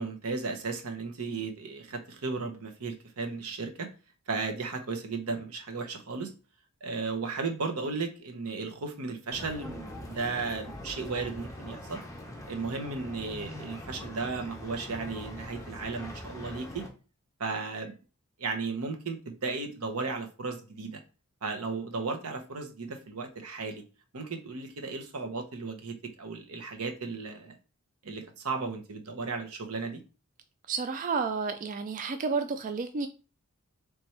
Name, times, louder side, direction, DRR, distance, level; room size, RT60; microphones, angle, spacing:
voice 1, 0.0-3.9 4.3-6.3 6.8-12.0 12.5-16.8 17.4-17.9 18.4-21.0 21.4-23.8 24.1-27.6 28.0-30.0, right 4 dB, 85° right, 0.9 m, -35 dB
sound 1, 9.3-16.9, left 1 dB, 15° left, 0.8 m, -42 dB
voice 2, 30.7-33.1, right 5 dB, 35° right, 0.3 m, -31 dB
4.3 x 3.4 x 3.2 m
head